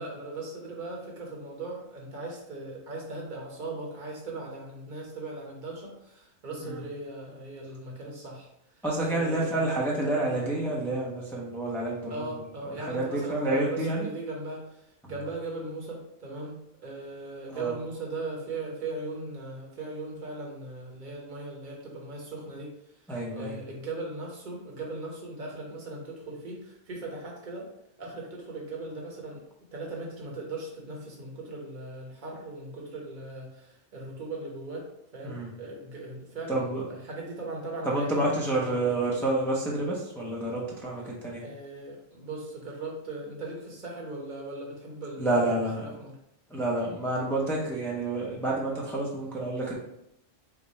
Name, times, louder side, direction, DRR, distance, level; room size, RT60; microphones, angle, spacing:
voice 1, 0.0-8.5 9.1-9.8 12.1-22.7 23.3-27.7 28.0-29.4 29.7-34.8 35.1-39.0 41.4-45.3 45.8-46.1 49.1-49.4, right 2 dB, 40° right, -2 dB, 1.1 m, -38 dB
voice 2, 8.8-12.3 12.6-14.1 15.0-15.1 17.5-17.7 23.1-23.6 35.2-35.5 36.5-36.8 37.8-41.4 45.2-45.8 46.5-49.8, right 2 dB, ahead, -4 dB, 0.6 m, -29 dB
4.9 x 2.3 x 4.0 m, 0.79 s
omnidirectional pair, 1.3 m